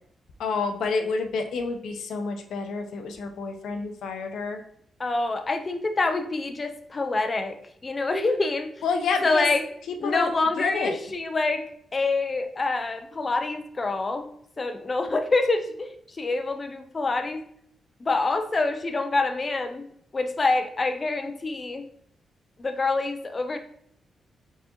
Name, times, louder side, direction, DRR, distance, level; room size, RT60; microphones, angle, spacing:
voice 1, 0.4-4.6 8.8-9.5 10.0-10.3 10.6-11.0, left 4 dB, 90° left, 5 dB, 0.6 m, -28 dB
voice 2, 5.0-7.6 7.8-8.7 9.2-9.6 10.0-11.6 11.9-14.3 14.6-17.4 18.0-19.8 20.1-21.8 22.6-23.6, left 3 dB, 25° left, 7 dB, 0.4 m, -26 dB
4.5 x 3.7 x 2.9 m, 0.68 s
wide cardioid pair, 170°, 0 cm